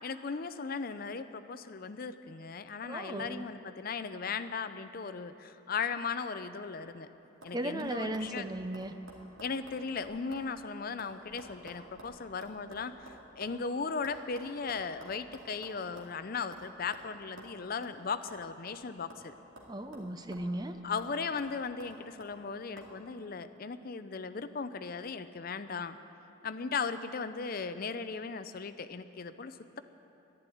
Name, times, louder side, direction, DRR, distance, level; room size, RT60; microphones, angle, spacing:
voice 1, 0.0-7.1 7.4-8.5 9.4-19.3 20.8-26.0 26.4-29.8, left 5 dB, 45° left, 11 dB, 0.5 m, -37 dB
voice 2, 2.9-3.4 7.5-8.9 19.7-20.8, right 1 dB, 20° right, 8 dB, 0.5 m, -36 dB
sound 1, 6.6-7.0 7.4-7.5 7.8-10.5 10.8-13.6 14.0-16.2 16.5-16.7 16.9-17.1 17.4-17.5 17.8-18.0 18.3-19.3 19.6-20.6 21.0-21.1 21.4-22.3 22.8-22.9, right 1 dB, 70° right, 2.5 m, -52 dB
11.5 x 11.5 x 9.2 m, 2.9 s
head